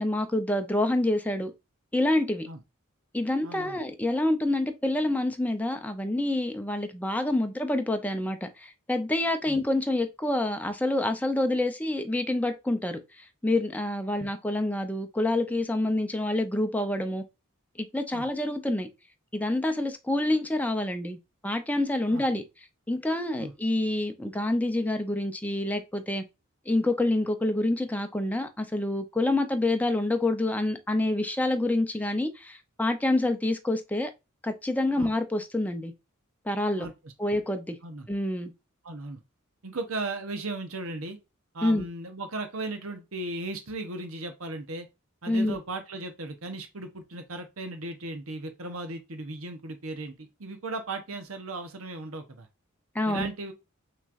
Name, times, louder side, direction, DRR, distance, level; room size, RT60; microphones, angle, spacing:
voice 1, 0.0-1.5 1.9-2.5 3.1-17.2 17.8-18.9 19.3-21.2 21.4-22.4 22.9-26.2 26.7-34.1 34.4-35.9 36.4-36.9 37.2-37.8 38.1-38.5 41.6-41.9 45.3-45.6 52.9-53.3, left 1 dB, 5° left, 0.6 m, -27 dB
voice 2, 3.4-3.8 9.5-9.6 14.2-14.3 18.1-18.2 22.1-22.2 23.4-23.5 35.0-35.1 36.8-36.9 37.8-38.1 38.8-39.2 39.6-41.2 41.5-44.9 45.2-52.5 53.1-53.5, right 2 dB, 75° right, 1.0 m, -36 dB
5.9 x 3.2 x 2.5 m
head